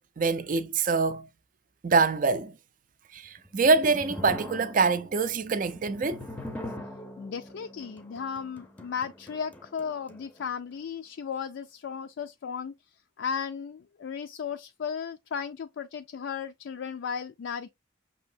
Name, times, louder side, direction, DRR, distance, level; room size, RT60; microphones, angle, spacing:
voice 1, 0.2-1.3 1.8-2.5 3.1-6.2, right 4 dB, 45° right, 0.4 m, -25 dB
sound 1, 3.3-10.5, left 1 dB, 10° left, 0.6 m, -42 dB
voice 2, 7.2-12.7 13.2-17.7, left 6 dB, 65° left, 0.3 m, -35 dB
6.1 x 2.7 x 2.6 m
head